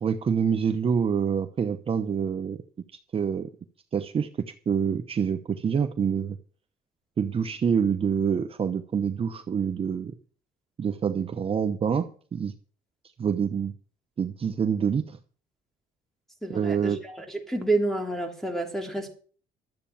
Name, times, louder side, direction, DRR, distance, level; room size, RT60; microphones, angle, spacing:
voice 1, 0.0-2.6 3.1-3.5 3.9-4.3 4.7-6.4 7.2-10.1 10.8-12.5 13.2-13.7 14.2-15.2 16.5-17.0, right 7 dB, 35° right, 0.9 m, -26 dB
voice 2, 16.4-17.1 17.5-19.1, right 2 dB, ahead, 3.3 m, -28 dB
12.5 x 8.2 x 7.2 m
cardioid pair, 110°, 17 cm